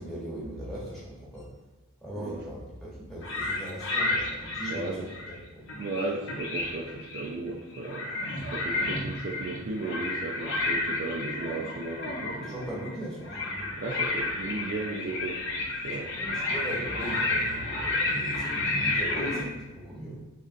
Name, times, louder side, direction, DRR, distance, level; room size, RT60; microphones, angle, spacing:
voice 1, 0.0-1.5 2.0-5.0 5.3-5.7 12.4-13.9 16.2-20.2, right 1 dB, ahead, -7 dB, 1.1 m, -39 dB
sound 1, 3.2-5.4 5.7-7.3 7.7-19.4, left 2 dB, 55° left, 0.7 m, -31 dB
voice 2, 4.7-5.1 5.8-8.1 8.5-12.6 13.8-15.4 15.8-16.1, right 3 dB, 45° right, 0 dB, 0.3 m, -35 dB
3.8 x 3.2 x 2.5 m, 1.1 s
head